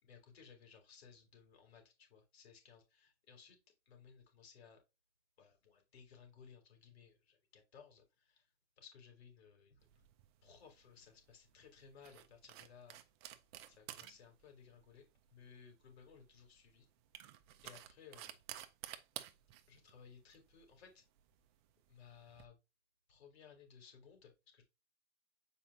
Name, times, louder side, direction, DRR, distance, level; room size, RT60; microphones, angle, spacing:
voice 1, 0.0-3.6 3.9-4.8 5.4-8.5 8.8-9.9 10.4-13.0 13.7-16.9 17.6-18.4 19.7-21.0 21.9-22.6 23.1-24.6, left 6 dB, 60° left, 3.6 m, -60 dB
sound 1, 9.8-22.4, right 12 dB, 25° right, 0.5 m, -54 dB
8.1 x 4.8 x 2.8 m
hypercardioid pair, 140°, 35 cm